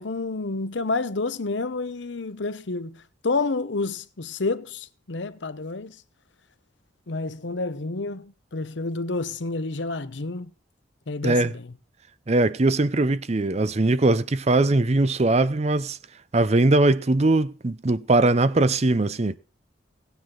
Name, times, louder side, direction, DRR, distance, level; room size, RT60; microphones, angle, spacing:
voice 1, 0.0-6.0 7.1-10.5 11.1-11.7, left 3 dB, 75° left, 0.8 m, -29 dB
voice 2, 12.3-16.0 16.3-19.4, right 2 dB, 35° right, 0.6 m, -21 dB
17.0 x 9.3 x 3.9 m
head